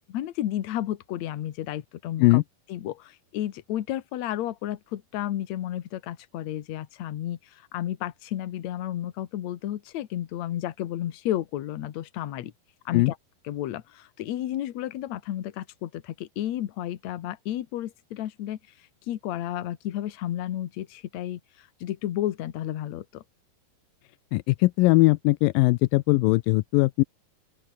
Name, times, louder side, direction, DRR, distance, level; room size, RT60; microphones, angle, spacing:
voice 1, 0.1-2.4 2.7-7.4 7.7-12.5 12.9-13.2 13.5-18.6 19.1-23.2, left 12 dB, 60° left, 2.0 m, -32 dB
voice 2, 24.3-27.0, left 21 dB, 90° left, 2.0 m, -20 dB
open air
omnidirectional pair, 4.6 m